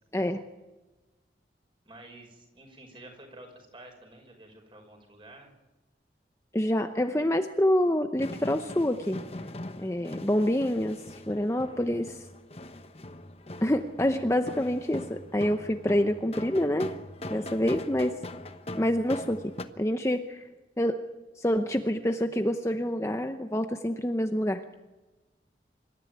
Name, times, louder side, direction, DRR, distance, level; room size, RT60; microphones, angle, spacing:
voice 1, 0.1-0.4 6.5-9.2 9.8-11.0 11.3-12.2 13.6-16.9 17.3-18.2 18.7-20.4 20.8-21.1 21.4-24.6, left 1 dB, 15° left, 7 dB, 0.8 m, -27 dB
voice 2, 1.8-5.5 17.4-17.8, right 1 dB, 30° right, 3 dB, 5.6 m, -50 dB
sound 1, 8.2-19.7, left 1 dB, 35° left, 1.1 m, -41 dB
26.0 x 14.0 x 9.3 m, 1.1 s
head